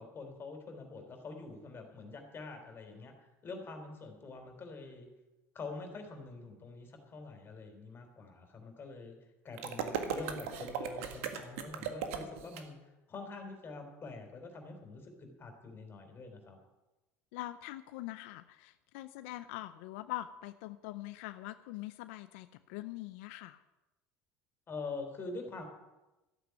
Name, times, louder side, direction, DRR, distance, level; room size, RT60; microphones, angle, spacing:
voice 1, 0.0-5.1 5.5-9.2 9.4-16.6 24.7-25.7, left 3 dB, 35° left, 5 dB, 3.7 m, -45 dB
sound 1, 9.6-12.6, right 8 dB, 90° right, 1.8 m, -37 dB
voice 2, 17.3-23.6, left 16 dB, 85° left, 11 dB, 0.6 m, -43 dB
13.5 x 8.2 x 9.6 m, 1.0 s
supercardioid pair, 105°, 7 cm